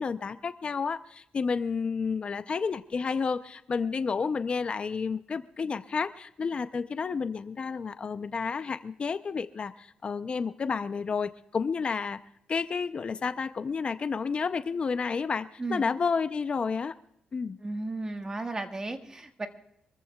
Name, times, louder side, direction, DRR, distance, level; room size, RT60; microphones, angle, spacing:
voice 1, 0.0-12.2 12.5-16.9 17.3-17.6, left 5 dB, 40° left, 11 dB, 0.5 m, -31 dB
voice 2, 17.6-19.5, right 2 dB, 25° right, 6 dB, 1.5 m, -34 dB
26.5 x 14.5 x 2.3 m, 0.75 s
cardioid pair, 105°, 3 cm